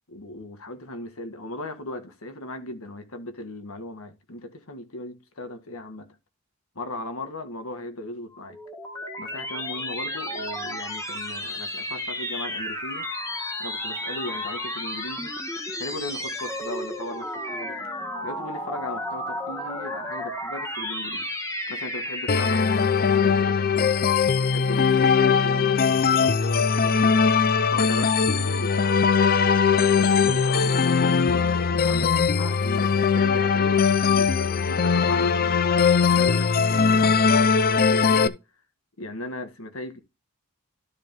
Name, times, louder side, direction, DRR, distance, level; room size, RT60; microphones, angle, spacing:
voice 1, 0.1-6.2 6.8-8.6 9.2-13.1 13.6-15.3 15.8-17.8 18.2-21.3 21.7-24.0 24.4-27.2 27.7-29.1 29.8-35.6 36.1-38.4 39.0-40.0, left 1 dB, 75° left, 1.7 m, -37 dB
sound 1, 8.3-23.0, left 1 dB, 15° left, 1.5 m, -33 dB
sound 2, 22.3-38.3, left 5 dB, 45° left, 0.6 m, -20 dB
13.0 x 4.8 x 3.6 m
head